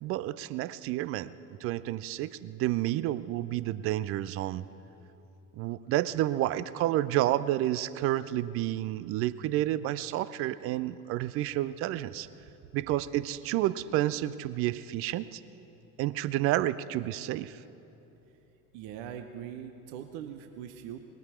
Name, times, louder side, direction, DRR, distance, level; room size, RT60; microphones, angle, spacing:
voice 1, 0.0-1.3 1.6-4.6 5.5-12.3 12.7-15.4 16.0-17.6, right 14 dB, 30° right, 16 dB, 0.4 m, -30 dB
voice 2, 18.7-21.0, right 9 dB, 55° right, 7 dB, 0.9 m, -41 dB
19.5 x 13.0 x 4.4 m, 2.9 s
figure-of-eight pair, 70°, 47 cm